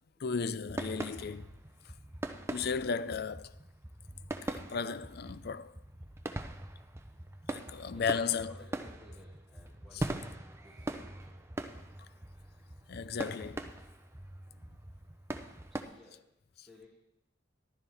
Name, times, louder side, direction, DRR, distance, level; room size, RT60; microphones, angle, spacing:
voice 1, 0.2-1.5 2.5-3.5 4.4-5.7 7.5-8.5 9.9-10.1 12.0-12.1 12.9-13.7, left 5 dB, 55° left, 0.5 m, -35 dB
sound 1, 0.7-15.8, right 1 dB, 15° right, 0.7 m, -42 dB
voice 2, 7.6-11.4 14.5-14.6 15.7-16.9, left 2 dB, ahead, 2.4 m, -60 dB
14.0 x 12.5 x 3.5 m
head